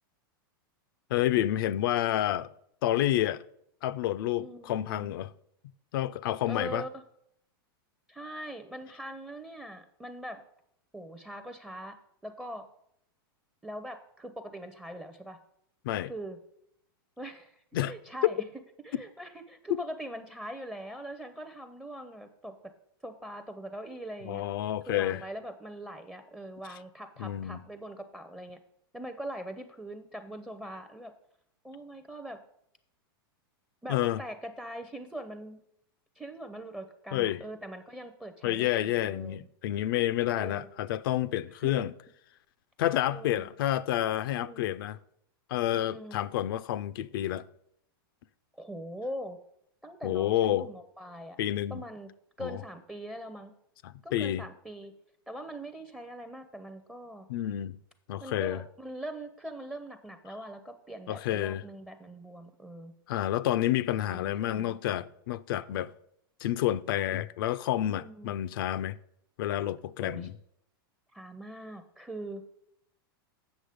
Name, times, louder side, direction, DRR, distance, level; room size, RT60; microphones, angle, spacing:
voice 1, 1.1-2.5 2.8-3.4 3.8-5.3 5.9-6.8 15.8-16.1 17.7-17.9 18.2-18.3 19.7-19.8 24.3-25.2 27.2-27.6 33.9-34.2 37.1-37.4 38.4-41.9 42.8-45.0 45.5-47.4 50.0-50.7 51.4-51.8 52.4-52.6 53.8-54.4 57.3-57.8 58.1-58.6 61.1-61.6 63.1-65.9 66.4-69.0 69.4-70.3, left 13 dB, 65° left, 0.4 m, -29 dB
voice 2, 4.4-5.1 6.5-7.0 8.1-10.4 10.9-12.0 12.2-12.7 13.6-15.4 16.0-16.4 17.2-18.4 18.8-22.7 23.0-24.4 24.9-28.6 28.9-31.1 31.6-32.4 33.8-35.6 36.2-39.5 40.3-40.8 41.5-42.0 43.1-43.5 44.4-44.7 45.7-46.2 48.5-49.4 49.8-51.4 51.7-52.1 52.4-53.5 54.0-54.9 55.3-57.3 58.2-62.9 63.9-64.8 67.8-68.3 70.0-70.3 71.1-72.4, right 1 dB, 5° right, 0.5 m, -42 dB
8.1 x 6.2 x 5.0 m
hypercardioid pair, 130°, 12 cm